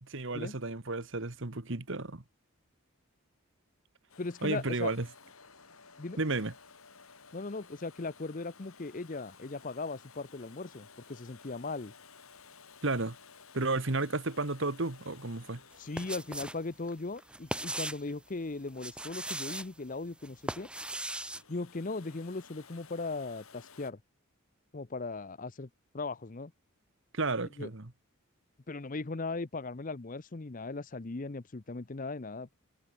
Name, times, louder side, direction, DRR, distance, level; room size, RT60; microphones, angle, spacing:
voice 1, 0.0-2.2 4.4-5.0 6.2-6.5 12.8-13.2 13.5-15.6 27.1-27.9, right 3 dB, 55° right, 1.5 m, -32 dB
Domestic sounds home sounds, 4.1-18.9 21.2-23.9, left 5 dB, 80° left, 5.5 m, -56 dB
voice 2, 4.2-4.9 6.0-6.2 7.3-11.9 15.8-20.7 21.5-24.0 24.7-25.7 25.9-26.5 27.6-27.7 28.7-32.5, left 3 dB, 35° left, 0.7 m, -38 dB
sound 1, 15.7-16.6 16.9-18.1 18.7-19.7 20.2-21.4, right 1 dB, 5° right, 2.1 m, -38 dB
head